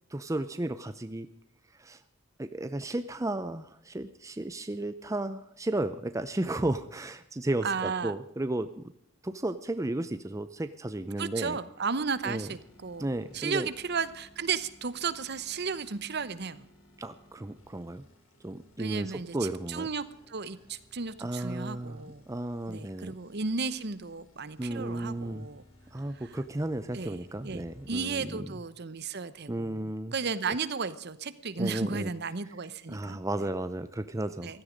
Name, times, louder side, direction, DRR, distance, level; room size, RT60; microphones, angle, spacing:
voice 1, 0.1-1.3 1.8-2.0 2.4-8.9 9.2-11.6 12.2-12.5 13.0-13.7 17.0-18.0 18.4-19.9 21.2-23.1 24.6-25.5 25.9-28.5 29.5-30.1 30.5-30.6 31.6-32.1 32.9-34.6, right 1 dB, 15° right, 11 dB, 0.6 m, -34 dB
voice 2, 7.6-8.1 11.2-13.1 13.3-16.7 18.8-22.2 22.7-25.6 26.1-26.3 26.9-29.8 30.1-33.5 34.4-34.6, right 5 dB, 50° right, 15 dB, 0.9 m, -34 dB
sound 1, 11.9-28.3, left 1 dB, 75° left, 3.6 m, -59 dB
16.0 x 13.5 x 5.2 m, 0.73 s
head